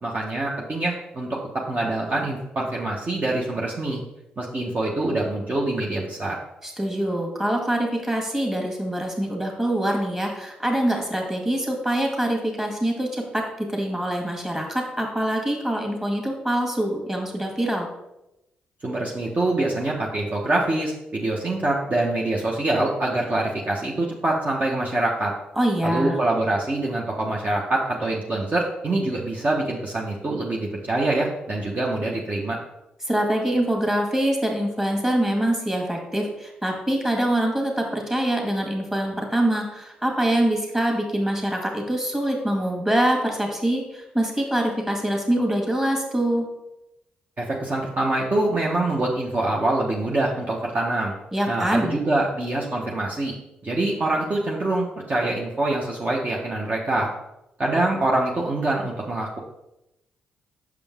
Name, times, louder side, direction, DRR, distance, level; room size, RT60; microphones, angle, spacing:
voice 1, 0.0-4.0 4.4-6.4 18.8-25.3 25.8-32.6 47.4-51.2 51.5-53.3 53.6-57.1 57.6-59.4, right 2 dB, 40° right, -3 dB, 1.1 m, -25 dB
voice 2, 6.6-17.9 25.6-26.2 33.0-46.5 51.3-52.0, right 1 dB, 15° right, 1 dB, 1.9 m, -24 dB
6.1 x 5.1 x 3.6 m, 0.90 s
supercardioid pair, 55°, 4 cm